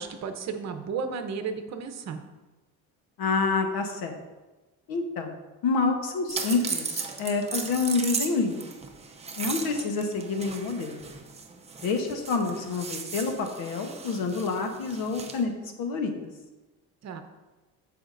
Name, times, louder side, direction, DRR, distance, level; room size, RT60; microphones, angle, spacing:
voice 1, 0.0-2.2 17.0-17.2, right 5 dB, 45° right, 7 dB, 0.9 m, -33 dB
voice 2, 3.2-4.2 4.9-5.3 5.6-8.6 9.4-11.1 11.8-16.3, left 4 dB, 75° left, 4 dB, 1.2 m, -28 dB
sound 1, 6.3-15.4, right 5 dB, 15° right, 0.6 m, -36 dB
13.5 x 5.0 x 2.6 m, 1.2 s
cardioid pair, 130°, 37 cm